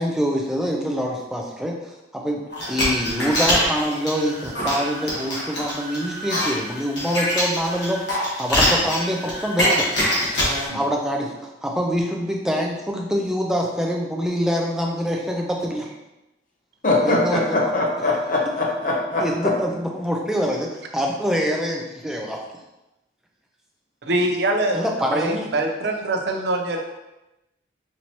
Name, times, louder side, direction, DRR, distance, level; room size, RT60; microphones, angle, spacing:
voice 1, 0.0-9.9 10.7-15.9 17.0-17.7 19.2-22.4 24.7-25.5, equal, 5° right, -1 dB, 0.4 m, -25 dB
sound 1, 2.5-10.7, equal, 75° left, 1.3 m, -24 dB
voice 2, 16.8-19.5, left 2 dB, 45° left, -1 dB, 0.7 m, -22 dB
voice 3, 24.0-26.8, right 1 dB, 70° right, 2 dB, 0.5 m, -24 dB
4.5 x 2.8 x 2.8 m, 0.97 s
head